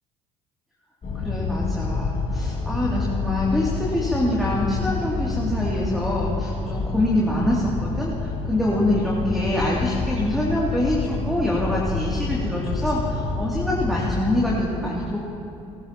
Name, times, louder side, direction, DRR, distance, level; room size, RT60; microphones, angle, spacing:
sound 1, 1.0-14.6, left 4 dB, 40° left, 3.0 m, -28 dB
voice 1, 1.2-15.2, left 1 dB, ahead, -5 dB, 2.8 m, -25 dB
20.5 x 14.0 x 3.0 m, 2.7 s
hypercardioid pair, 75°, 16 cm